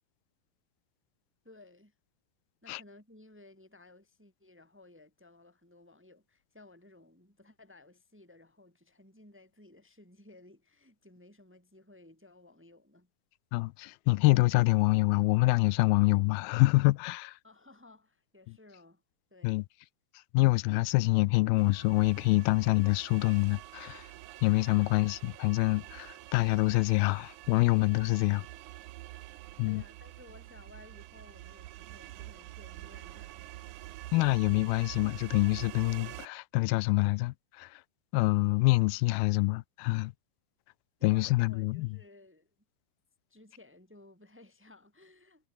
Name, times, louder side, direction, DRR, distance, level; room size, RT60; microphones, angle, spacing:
voice 1, 1.4-1.9 2.6-13.1 17.4-19.0 19.3-19.6 24.7-24.9 29.3-29.4 29.7-33.4 33.7-33.8 41.0-42.5 43.3-45.5, left 2 dB, 5° right, 1.7 m, -57 dB
voice 2, 13.5-17.4 19.4-19.6 20.3-24.1 24.4-28.5 29.6-29.8 34.1-37.8 38.1-40.1 41.0-41.9, left 21 dB, 85° left, 2.5 m, -26 dB
sound 1, 21.6-36.3, right 16 dB, 75° right, 2.0 m, -47 dB
omnidirectional pair, 4.3 m